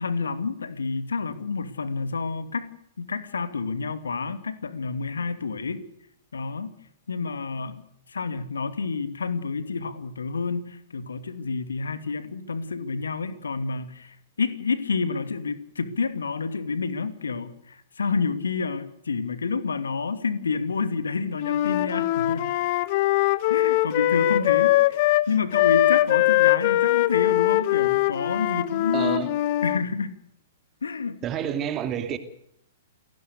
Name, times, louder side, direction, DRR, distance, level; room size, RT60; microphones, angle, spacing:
voice 1, 0.0-2.7 3.0-5.8 6.3-6.7 7.1-7.8 8.1-22.5 23.5-29.3 29.6-30.2 30.8-31.2, left 4 dB, 70° left, 2.5 m, -29 dB
Wind instrument woodwind instrument, 21.4-25.3 25.5-29.8, left 16 dB, 45° left, 1.3 m, -22 dB
voice 2, 28.9-29.3 31.2-32.2, right 9 dB, 25° right, 2.7 m, -28 dB
29.0 x 18.5 x 6.7 m
figure-of-eight pair, 110°, 0 cm